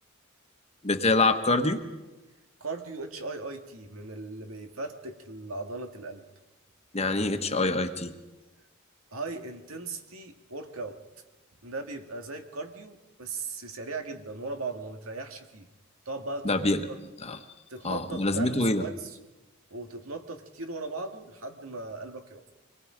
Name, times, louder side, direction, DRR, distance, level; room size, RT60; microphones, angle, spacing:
voice 1, 0.8-1.8 6.9-8.1 16.4-16.8 17.2-17.4 17.8-18.8, left 2 dB, 30° left, 7 dB, 1.3 m, -25 dB
voice 2, 2.6-6.2 9.1-11.0 11.6-15.7 16.1-17.0 17.7-19.2 19.7-22.4, right 3 dB, 90° right, 5 dB, 2.1 m, -38 dB
25.0 x 20.5 x 5.1 m, 1.1 s
head